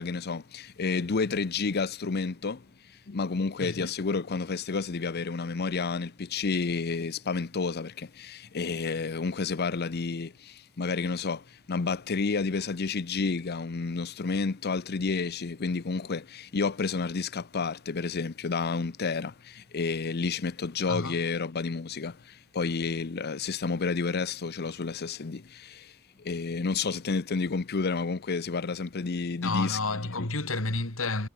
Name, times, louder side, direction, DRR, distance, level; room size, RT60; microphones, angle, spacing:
voice 1, 0.0-2.7 3.1-25.9 26.2-30.3, left 4 dB, 50° left, 0.7 m, -30 dB
voice 2, 3.6-3.9 20.9-21.2 29.4-31.3, left 3 dB, 80° left, 3.6 m, -31 dB
head